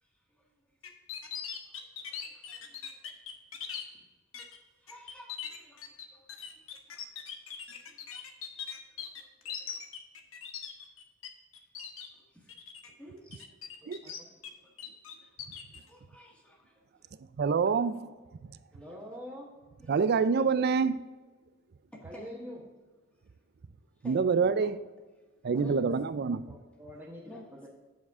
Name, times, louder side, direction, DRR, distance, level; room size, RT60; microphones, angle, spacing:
voice 1, 0.0-0.7 1.6-1.9 2.2-3.0 3.6-3.7 4.8-8.2 8.7-9.8 10.6-10.7 11.9-12.6 13.0-13.5 14.3-14.8 15.1-17.1 18.7-19.0 19.8-19.9 21.9-22.6 24.0-24.7 25.5-25.8 27.2-27.7, equal, 5° left, 1.7 m, -55 dB
sound 1, 0.8-3.8 4.3-4.6 4.9-11.3 11.5-12.1 12.5-12.9 13.3-14.5 14.8-15.8, left 7 dB, 75° left, 1.0 m, -41 dB
voice 2, 17.4-18.1 19.9-21.0 24.1-24.8 25.4-26.5, right 5 dB, 50° right, 0.4 m, -26 dB
voice 3, 18.7-19.5 22.0-22.6 26.5-27.7, equal, 10° right, 1.3 m, -45 dB
8.5 x 7.1 x 3.6 m
head